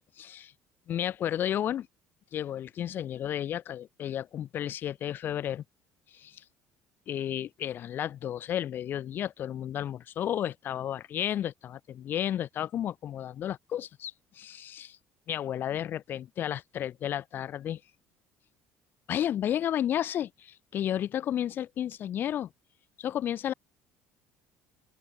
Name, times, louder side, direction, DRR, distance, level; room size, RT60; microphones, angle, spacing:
voice 1, 0.2-0.5 0.9-1.9 2.3-5.6 6.1-6.4 7.1-15.0 15.3-17.8 19.1-22.5 23.0-23.5, left 10 dB, 45° left, 0.4 m, -32 dB
open air
cardioid pair, 130°, 5 cm